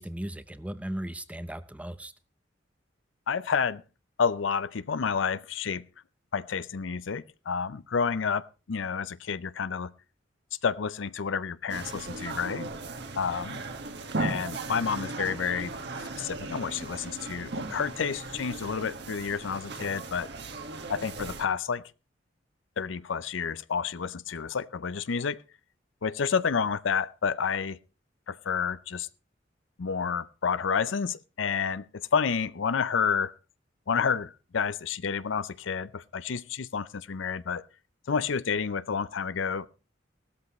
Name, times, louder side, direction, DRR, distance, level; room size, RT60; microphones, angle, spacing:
voice 1, 0.0-2.1, right 1 dB, 5° right, 0.7 m, -37 dB
voice 2, 3.3-3.8 4.2-5.8 6.3-9.9 10.6-12.7 13.2-13.6 14.2-15.7 16.2-20.3 20.9-21.8 22.8-25.4 26.0-27.8 28.3-29.1 29.8-31.9 32.1-33.4 33.9-37.6 38.1-39.7, left 6 dB, 85° left, 0.5 m, -29 dB
sound 1, 11.7-21.5, right 3 dB, 65° right, 1.7 m, -37 dB
16.5 x 13.0 x 3.1 m
head